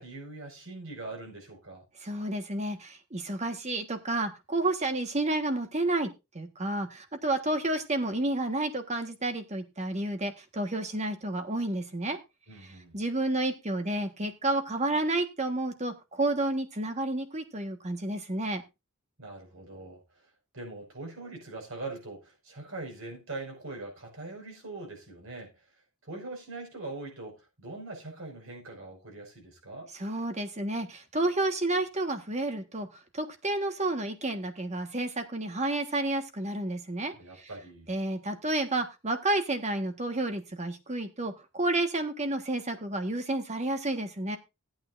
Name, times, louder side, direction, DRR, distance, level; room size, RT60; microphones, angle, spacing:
voice 1, 0.0-1.8 12.5-13.0 19.2-25.6 26.0-29.9 37.1-37.9, right 2 dB, 70° right, 5.5 m, -42 dB
voice 2, 2.0-6.1 6.3-12.2 12.9-18.6 29.9-32.9 33.1-37.5 37.9-44.4, right 2 dB, 35° right, 1.5 m, -30 dB
16.5 x 8.8 x 2.6 m
head